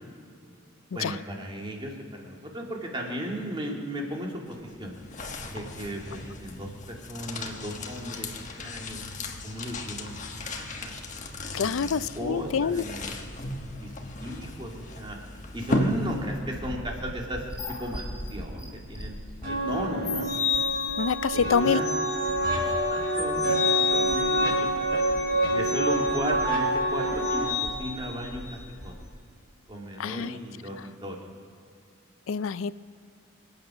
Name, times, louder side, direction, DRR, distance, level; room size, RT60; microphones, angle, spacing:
voice 1, 0.9-4.9 5.5-8.3 8.6-9.0 9.4-10.9 11.6-13.2 13.8-13.9 14.2-15.2 15.5-19.2 19.4-20.3 21.3-21.9 22.5-25.0 25.5-28.9 29.7-31.3, equal, 25° right, 0 dB, 2.4 m, -35 dB
sound 1, 4.5-16.6, left 1 dB, 40° left, 1.3 m, -35 dB
voice 2, 11.5-12.8 21.0-21.8 30.0-30.4 32.3-32.7, left 6 dB, 90° left, 16 dB, 0.4 m, -26 dB
sound 2, 15.9-29.1, left 6 dB, 20° left, 3.3 m, -33 dB
sound 3, 19.4-27.4, right 1 dB, 45° right, 5.2 m, -27 dB
26.0 x 8.8 x 6.1 m, 2.4 s
head